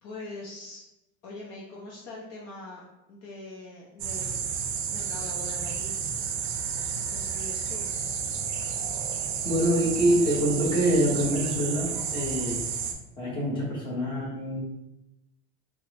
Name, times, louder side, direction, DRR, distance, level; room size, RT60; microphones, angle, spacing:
voice 1, 0.0-0.8 1.2-2.8 3.1-4.5 4.9-6.0 7.1-7.8, left 2 dB, 45° left, -3 dB, 0.6 m, -42 dB
sound 1, 4.0-12.9, right 7 dB, 50° right, 0.4 m, -31 dB
voice 2, 9.4-12.6 13.2-14.6, equal, 15° left, -5 dB, 0.7 m, -25 dB
3.4 x 2.0 x 3.1 m, 0.93 s
cardioid pair, 155°, 39 cm